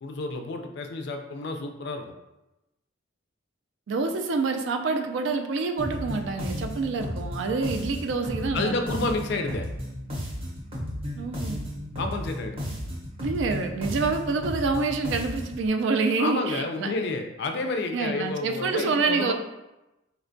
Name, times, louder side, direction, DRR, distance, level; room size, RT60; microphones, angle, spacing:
voice 1, 0.0-2.1 8.5-9.7 12.0-12.6 16.2-19.3, left 3 dB, 55° left, 5 dB, 0.3 m, -30 dB
voice 2, 3.9-9.1 11.2-11.6 13.2-16.9 17.9-19.3, right 4 dB, 65° right, 5 dB, 0.3 m, -27 dB
sound 1, 5.8-15.6, equal, 30° right, 0.6 m, -34 dB
4.2 x 2.2 x 2.5 m, 0.98 s
head